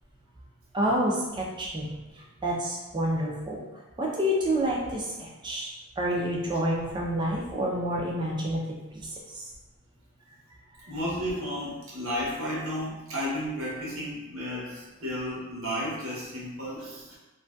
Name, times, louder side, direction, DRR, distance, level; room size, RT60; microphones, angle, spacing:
voice 1, 0.7-3.6 4.0-5.7 6.0-8.6 8.9-9.4, equal, 20° right, -2 dB, 0.3 m, -28 dB
voice 2, 10.9-17.2, equal, 65° right, -6 dB, 0.9 m, -33 dB
2.5 x 2.2 x 2.2 m, 1.1 s
head